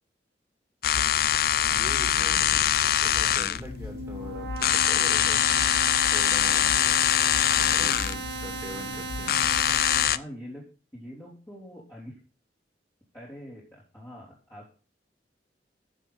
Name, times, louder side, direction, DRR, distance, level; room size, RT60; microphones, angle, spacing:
sound 1, 0.8-10.2, left 10 dB, 55° left, 0.5 m, -24 dB
voice 1, 1.7-5.5 6.0-6.8 7.5-9.5, equal, 15° right, 1 dB, 2.9 m, -42 dB
sound 2, 3.5-10.0, right 3 dB, 85° right, 2.3 m, -36 dB
voice 2, 7.5-8.2 10.0-10.7 10.9-12.2 13.1-14.7, equal, 15° left, -7 dB, 3.7 m, -44 dB
15.0 x 6.4 x 5.6 m, 0.37 s
head